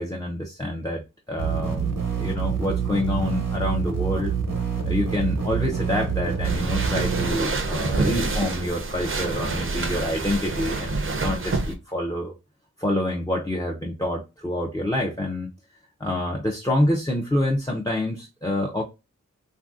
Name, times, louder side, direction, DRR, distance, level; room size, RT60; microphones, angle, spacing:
voice 1, 0.0-4.3 4.8-12.4 12.8-15.5 16.0-18.8, left 1 dB, 10° left, 0.4 m, -27 dB
sound 1, 1.4-7.3, right 6 dB, 85° right, 0.8 m, -26 dB
sound 2, 6.4-11.7, right 3 dB, 40° right, 0.5 m, -27 dB
3.1 x 2.5 x 2.3 m
wide cardioid pair, 45°, 32 cm